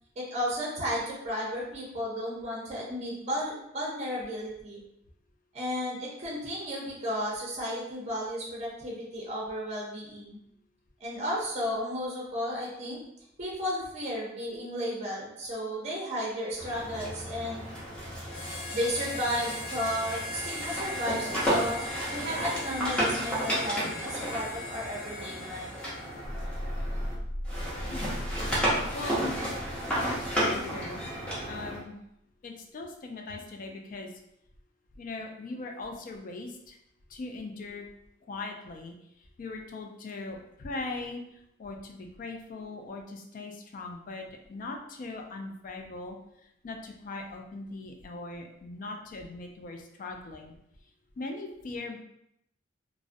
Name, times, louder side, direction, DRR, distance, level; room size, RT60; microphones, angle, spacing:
voice 1, 0.2-4.8 5.5-10.4 11.0-13.0 13.4-17.7 18.7-21.8 22.1-25.7, equal, 35° right, -4 dB, 0.5 m, -33 dB
sound 1, 16.6-27.1 27.5-31.8, equal, 5° left, 0.6 m, -33 dB
Harmonica, 18.3-26.3, left 1 dB, 75° left, 0.8 m, -40 dB
sound 2, 26.2-30.8, equal, 90° right, 0.5 m, -37 dB
voice 2, 30.0-32.0 32.4-34.2 35.0-36.8 37.1-37.9 38.3-50.5 51.2-52.0, left 3 dB, 45° left, 3 dB, 0.3 m, -40 dB
2.4 x 2.0 x 2.5 m, 0.78 s
head